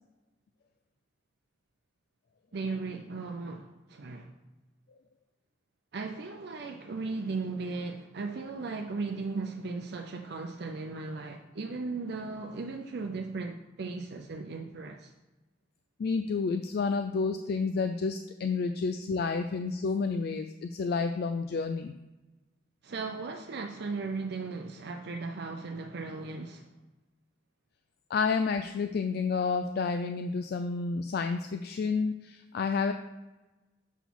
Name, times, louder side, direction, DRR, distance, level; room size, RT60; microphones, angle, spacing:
voice 1, 2.5-4.3 5.9-15.1 22.8-26.6, right 3 dB, 60° right, 0.5 m, -37 dB
voice 2, 16.0-22.0 28.1-32.9, left 4 dB, 60° left, 0.4 m, -30 dB
7.0 x 4.1 x 6.0 m
head